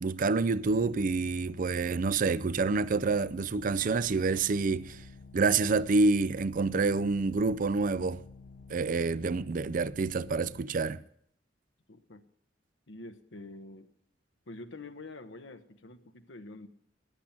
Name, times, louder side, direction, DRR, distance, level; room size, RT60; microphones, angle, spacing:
voice 1, 0.0-5.0 5.3-8.2 8.7-11.0, right 4 dB, 45° right, 0.4 m, -27 dB
sound 1, 0.6-10.6, left 3 dB, 55° left, 0.7 m, -50 dB
voice 2, 11.9-12.2 12.9-13.9 14.5-16.7, left 2 dB, 80° left, 1.1 m, -46 dB
14.5 x 10.5 x 5.9 m
head